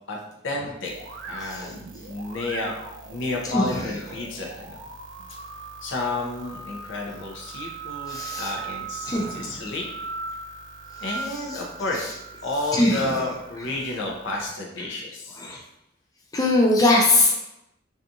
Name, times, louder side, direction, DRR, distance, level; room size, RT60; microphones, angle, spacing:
voice 1, 0.4-0.9 1.2-2.7 3.1-4.8 5.8-9.9 11.0-12.1 12.4-15.4, left 2 dB, 70° left, -1 dB, 0.6 m, -31 dB
sound 1, 0.8-14.5, right 4 dB, 65° right, 0.4 m, -39 dB
voice 2, 1.4-1.7 3.4-3.9 8.1-8.5 9.0-9.6 11.2-11.6 11.9-12.0 12.7-13.2 13.6-13.7 14.8-14.9 15.4-15.6 16.3-17.5, left 2 dB, 20° left, -2 dB, 0.3 m, -22 dB
2.7 x 2.3 x 2.5 m, 0.87 s
head